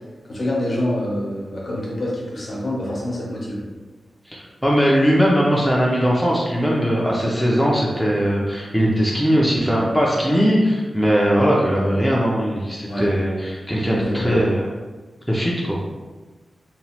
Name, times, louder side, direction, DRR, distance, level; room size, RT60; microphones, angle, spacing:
voice 1, 0.3-3.6 12.8-13.1 13.9-14.3, left 1 dB, 45° left, -4 dB, 0.7 m, -26 dB
voice 2, 4.3-14.7 15.3-15.8, equal, ahead, -4 dB, 0.4 m, -19 dB
2.9 x 2.0 x 2.8 m, 1.3 s
wide cardioid pair, 140°, 0 cm